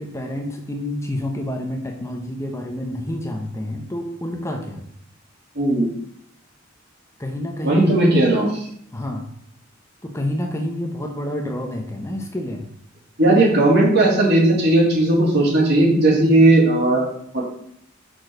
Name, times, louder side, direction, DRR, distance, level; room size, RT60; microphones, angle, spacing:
voice 1, 0.0-4.8 7.2-8.1 8.9-9.3 10.0-12.6, left 1 dB, 15° left, 2 dB, 0.9 m, -28 dB
voice 2, 5.5-5.9 7.6-8.5 13.2-17.1 17.3-17.4, right 1 dB, 55° right, -4 dB, 2.9 m, -16 dB
6.3 x 4.6 x 6.5 m, 0.69 s
head